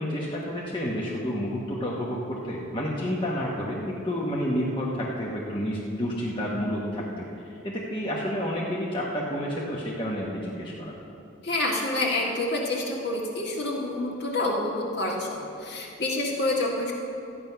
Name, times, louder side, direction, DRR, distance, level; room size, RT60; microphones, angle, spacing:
voice 1, 0.0-10.9, equal, 25° left, -5 dB, 1.1 m, -30 dB
voice 2, 11.4-16.9, left 2 dB, 50° left, -2 dB, 1.8 m, -28 dB
13.0 x 9.4 x 5.7 m, 2.7 s
head